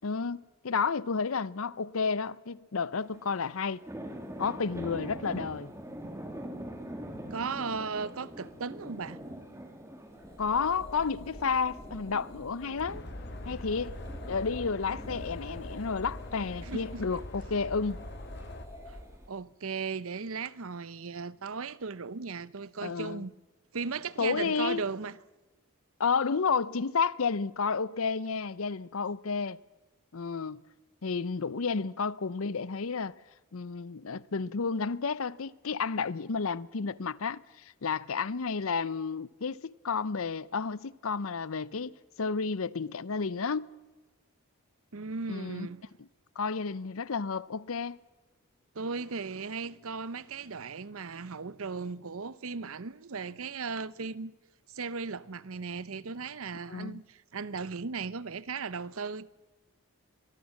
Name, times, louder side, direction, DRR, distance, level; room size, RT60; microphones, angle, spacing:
voice 1, 0.0-3.8 4.4-5.7 10.4-13.0 13.5-14.0 14.3-18.1 22.8-23.2 24.2-24.8 26.0-29.6 30.1-30.6 31.0-33.1 33.5-37.4 37.8-41.9 42.2-43.7 45.3-45.7 46.4-48.0 56.7-57.0, left 5 dB, 70° left, 0.6 m, -31 dB
sound 1, 2.9-19.3, equal, 15° right, 2.7 m, -45 dB
voice 2, 7.3-9.2 16.6-17.2 18.9-19.0 19.3-23.3 23.7-25.2 44.9-45.9 48.7-54.3 54.7-59.3, right 5 dB, 70° right, 0.7 m, -37 dB
sound 2, 10.1-19.2, left 1 dB, 25° left, 3.6 m, -48 dB
sound 3, 12.8-18.7, left 1 dB, 50° left, 1.7 m, -43 dB
24.0 x 19.0 x 7.3 m
head